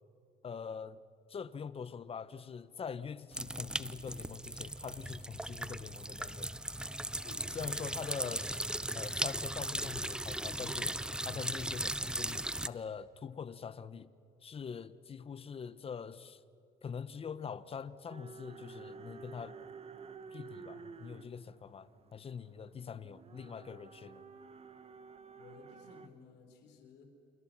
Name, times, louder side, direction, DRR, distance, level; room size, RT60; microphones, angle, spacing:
voice 1, 0.4-1.0 1.3-6.5 7.5-8.6 8.9-14.1 14.4-16.4 16.8-19.6 20.3-24.2, left 6 dB, 35° left, 1.0 m, -44 dB
sound 1, 3.3-12.7, right 1 dB, 5° right, 0.6 m, -38 dB
voice 2, 7.2-7.7 25.4-27.1, left 5 dB, 85° left, 4.1 m, -56 dB
sound 2, 18.1-26.1, right 5 dB, 35° right, 1.6 m, -52 dB
29.5 x 28.5 x 6.1 m
cardioid pair, 110°, 17 cm